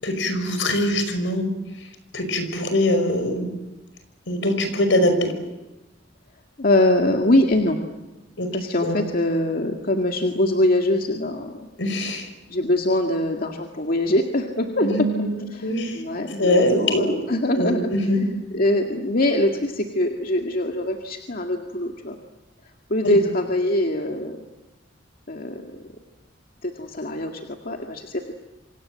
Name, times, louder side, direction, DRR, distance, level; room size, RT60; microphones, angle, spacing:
voice 1, 0.0-1.5 1.8-3.5 4.3-5.3 8.4-8.5 8.8-9.0 11.8-12.3 14.8-15.4 15.6-16.0 16.4-17.1 17.5-18.2 23.0-23.2, left 1 dB, 75° left, 8 dB, 5.4 m, -22 dB
voice 2, 6.6-7.8 8.5-11.7 12.5-15.0 15.5-17.9 18.5-22.2 22.9-24.4 25.3-25.8 26.6-28.4, left 1 dB, 50° left, 3 dB, 2.1 m, -23 dB
29.0 x 25.5 x 7.7 m, 1.0 s
head